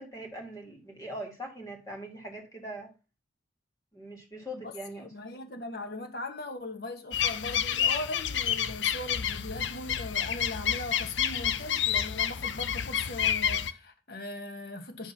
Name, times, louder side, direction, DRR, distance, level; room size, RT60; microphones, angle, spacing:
voice 1, 0.0-2.9 3.9-5.1, right 1 dB, 20° left, 2.3 m, -41 dB
voice 2, 4.6-15.1, left 2 dB, 55° left, 1.5 m, -39 dB
sound 1, 7.1-13.7, left 9 dB, 85° left, 0.6 m, -29 dB
10.0 x 3.5 x 5.9 m
head